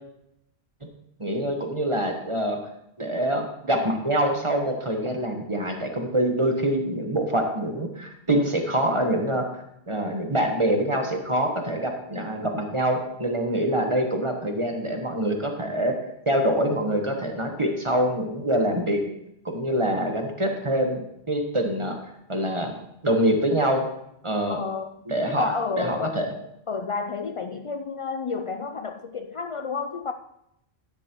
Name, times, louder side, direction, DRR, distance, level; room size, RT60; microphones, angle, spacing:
voice 1, 1.2-2.6 3.0-9.4 9.9-15.9 16.3-19.0 19.4-22.0 22.3-22.7 23.0-23.8 24.2-24.6 25.1-26.3, right 1 dB, 30° right, 3 dB, 1.2 m, -25 dB
voice 2, 24.5-26.3 26.7-30.1, left 4 dB, 60° left, 8 dB, 0.3 m, -31 dB
12.0 x 10.0 x 3.0 m, 0.80 s
omnidirectional pair, 1.1 m